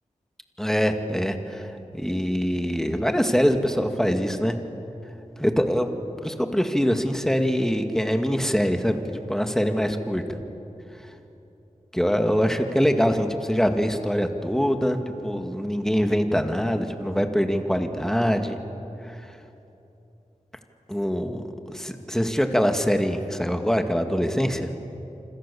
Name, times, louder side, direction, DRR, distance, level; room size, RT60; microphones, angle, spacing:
voice 1, 0.6-1.7 1.9-4.6 5.4-5.9 6.2-10.2 11.9-18.6 19.0-19.2 20.9-24.7, equal, 5° left, 5 dB, 2.2 m, -24 dB
27.5 x 26.0 x 7.2 m, 2.9 s
wide cardioid pair, 55°, 13 cm